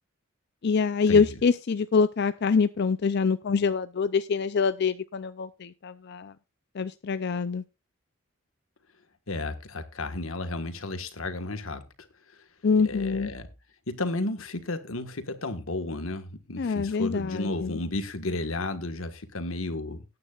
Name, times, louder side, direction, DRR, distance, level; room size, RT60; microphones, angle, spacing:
voice 1, 0.6-6.3 6.7-7.6 12.6-13.3 16.6-17.8, left 5 dB, 55° left, 0.5 m, -25 dB
voice 2, 9.3-11.8 12.8-13.5 13.9-20.0, left 2 dB, 90° left, 1.6 m, -33 dB
18.5 x 9.5 x 2.4 m
head